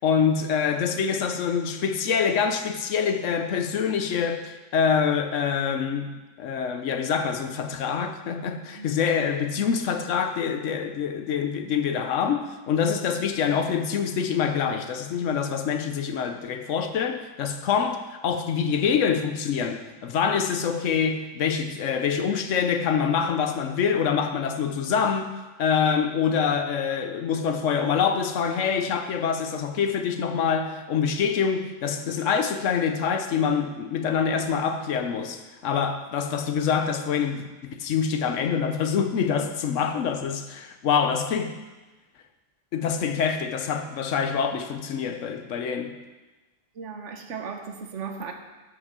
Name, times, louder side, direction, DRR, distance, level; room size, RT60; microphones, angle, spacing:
voice 1, 0.0-25.3 25.6-41.6 42.7-46.0, left 6 dB, 90° left, 1.1 m, -25 dB
voice 2, 46.7-48.3, right 5 dB, 75° right, 1.3 m, -36 dB
11.0 x 6.1 x 6.7 m
omnidirectional pair, 1.2 m